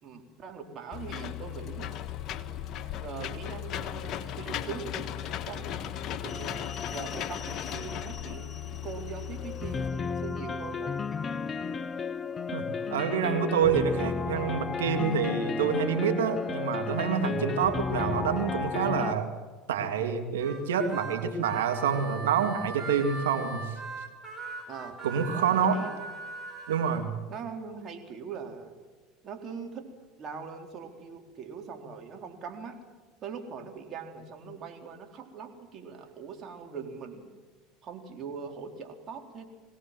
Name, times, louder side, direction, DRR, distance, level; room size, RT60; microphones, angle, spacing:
voice 1, 0.0-2.1 3.0-11.0 24.7-26.1 27.3-28.8 29.2-29.9 30.2-32.8 33.2-37.3 37.8-39.5, right 6 dB, 45° right, 4 dB, 4.0 m, -42 dB
Engine / Mechanisms, 0.9-9.9, left 10 dB, 50° left, 1.4 m, -37 dB
sound 1, 6.3-19.1, left 5 dB, 30° left, 0.6 m, -34 dB
voice 2, 12.5-19.3 19.7-23.7 25.0-25.8 26.7-27.1, right 7 dB, 85° right, 6 dB, 2.4 m, -27 dB
Harmonica, 20.4-27.0, right 2 dB, 20° right, 7.1 m, -40 dB
22.5 x 17.5 x 7.7 m, 1.4 s
hypercardioid pair, 85°, 0 cm